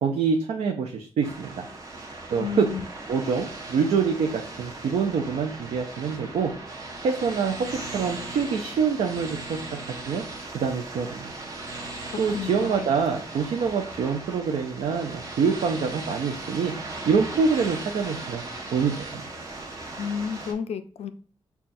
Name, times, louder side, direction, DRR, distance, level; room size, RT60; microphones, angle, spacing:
voice 1, 0.0-1.7 2.3-2.7 3.1-6.5 7.0-10.3 10.5-11.3 12.2-16.8 17.1-18.4 18.7-19.2, right 5 dB, 80° right, 0.4 m, -26 dB
sound 1, 1.2-20.5, right 2 dB, 30° right, 0.7 m, -38 dB
voice 2, 2.4-2.9 12.3-12.9 20.0-21.1, left 7 dB, 75° left, 0.4 m, -31 dB
5.4 x 2.3 x 2.5 m
wide cardioid pair, 120°, 11 cm